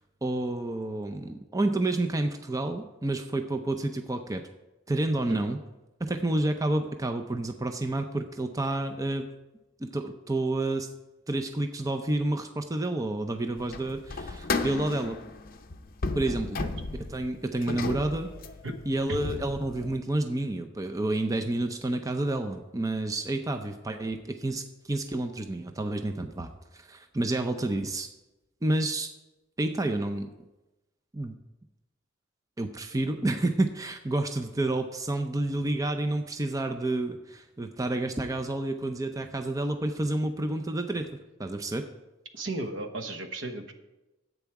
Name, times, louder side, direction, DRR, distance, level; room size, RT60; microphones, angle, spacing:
voice 1, 0.2-4.4 4.9-5.6 6.0-9.3 9.8-10.9 11.3-15.2 16.1-16.6 16.9-18.3 18.9-28.1 28.6-29.1 29.6-30.3 31.1-31.4 32.6-41.9, right 2 dB, 15° right, 6 dB, 0.5 m, -29 dB
sound 1, 13.6-20.0, left 3 dB, 45° left, 0.7 m, -34 dB
voice 2, 42.3-43.7, right 2 dB, 70° right, 7 dB, 1.1 m, -35 dB
10.5 x 8.2 x 4.7 m, 1.0 s
head